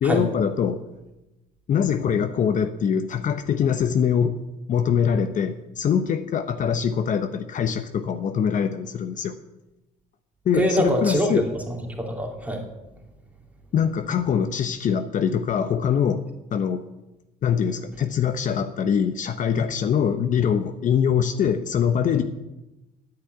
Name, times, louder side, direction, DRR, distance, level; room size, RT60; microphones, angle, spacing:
voice 1, 0.0-0.8 1.7-4.4 4.7-9.3 10.4-11.5 13.7-16.9 17.4-22.2, left 7 dB, 50° left, 9 dB, 0.8 m, -23 dB
voice 2, 10.5-12.6, equal, 10° right, 1 dB, 2.9 m, -24 dB
9.6 x 8.9 x 9.2 m, 0.99 s
cardioid pair, 110°, 17 cm